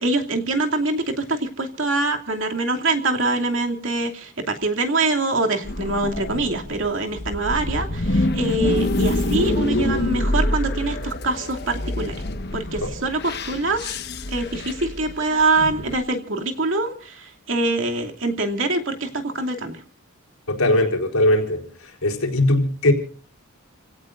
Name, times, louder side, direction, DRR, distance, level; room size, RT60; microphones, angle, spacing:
voice 1, 0.0-12.2 12.5-13.9 14.3-19.8, right 2 dB, 60° right, 2.6 m, -24 dB
sound 1, 5.6-16.0, left 1 dB, 50° left, 1.3 m, -26 dB
voice 2, 20.5-21.6 22.0-22.9, left 1 dB, 80° left, 4.3 m, -19 dB
29.5 x 17.0 x 2.6 m
head